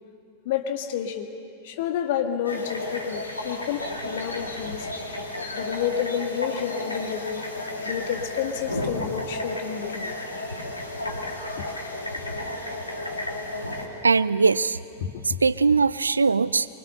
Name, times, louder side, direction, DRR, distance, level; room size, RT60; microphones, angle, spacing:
voice 1, 0.5-1.3 1.6-4.9 5.5-7.5 7.8-10.2 11.6-11.7 15.0-15.4, left 9 dB, 50° left, 5 dB, 1.8 m, -30 dB
sound 1, 2.4-13.9, left 1 dB, 80° left, 2.6 m, -33 dB
voice 2, 14.0-14.8 15.2-16.7, right 4 dB, 75° right, 17 dB, 0.5 m, -21 dB
24.0 x 23.5 x 6.9 m, 2.5 s
figure-of-eight pair, 90°, 0 cm